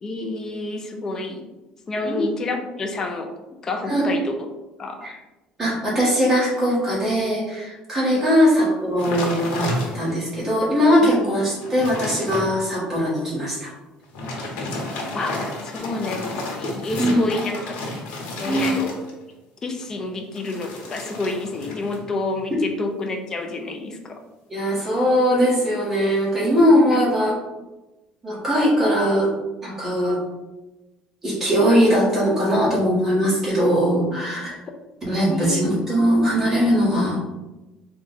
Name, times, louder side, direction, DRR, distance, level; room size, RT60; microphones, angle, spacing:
voice 1, 0.0-1.4 1.9-3.3 3.6-4.5 4.8-5.1 8.1-8.2 11.0-11.5 14.2-14.3 15.1-17.8 18.4-19.0 19.6-24.2 26.9-27.0 34.1-34.2 35.3-35.7, left 2 dB, 25° left, 4 dB, 0.5 m, -29 dB
voice 2, 5.6-9.7 9.9-13.7 16.9-17.2 18.4-18.8 24.5-27.3 28.2-29.3 29.6-30.2 31.2-34.6 35.0-37.2, equal, 15° right, -7 dB, 1.5 m, -20 dB
sound 1, 9.0-10.3 10.8-10.9 11.3-12.5 14.0-19.3 20.3-22.0 22.3-22.7, left 2 dB, 80° left, 1.0 m, -31 dB
3.8 x 2.3 x 4.0 m, 1.1 s
cardioid pair, 155°, 2 cm